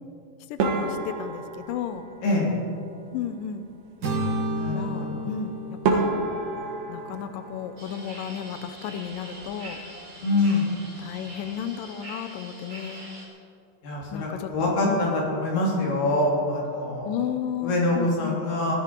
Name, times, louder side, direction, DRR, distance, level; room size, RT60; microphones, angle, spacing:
voice 1, 0.5-2.1 3.1-3.6 4.7-6.1 6.9-9.8 11.0-13.1 14.1-15.1 17.0-18.4, left 8 dB, 85° left, 9 dB, 1.9 m, -33 dB
sound 1, 0.6-3.0 5.3-5.4 5.8-8.6 8.9-9.6 9.9-10.1 10.5-10.6 11.2-11.5, right 3 dB, 60° right, 2.8 m, -30 dB
voice 2, 2.2-2.6 4.6-5.3 10.2-10.7 13.8-17.2 17.6-18.7, left 2 dB, 55° left, -3 dB, 4.2 m, -25 dB
sound 2, 4.0-8.0, right 1 dB, 80° right, 0.9 m, -32 dB
sound 3, 7.8-13.3, right 1 dB, 25° right, 4.1 m, -43 dB
19.0 x 13.5 x 4.6 m, 2.5 s
omnidirectional pair, 5.0 m